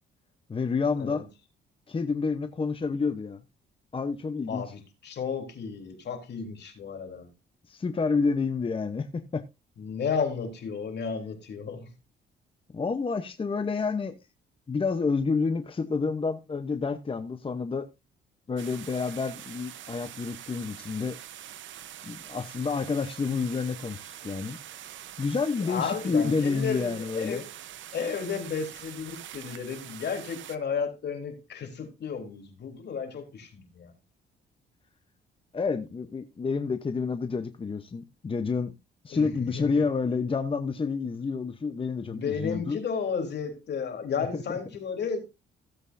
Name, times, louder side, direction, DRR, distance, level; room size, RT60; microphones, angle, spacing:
voice 1, 0.5-1.2 1.9-3.4 3.9-4.6 7.7-9.4 12.7-14.2 14.7-17.9 18.5-21.2 22.0-24.6 25.2-27.4 35.5-38.7 39.0-42.8 44.3-44.6, left 4 dB, 25° left, 0.9 m, -29 dB
voice 2, 4.5-7.3 9.8-11.9 25.6-27.5 27.9-33.9 39.1-39.3 39.5-39.8 42.1-45.2, left 6 dB, 60° left, 3.6 m, -33 dB
sound 1, 18.6-30.6, right 11 dB, 75° right, 0.9 m, -44 dB
16.5 x 8.0 x 2.6 m
cardioid pair, 90°, 20 cm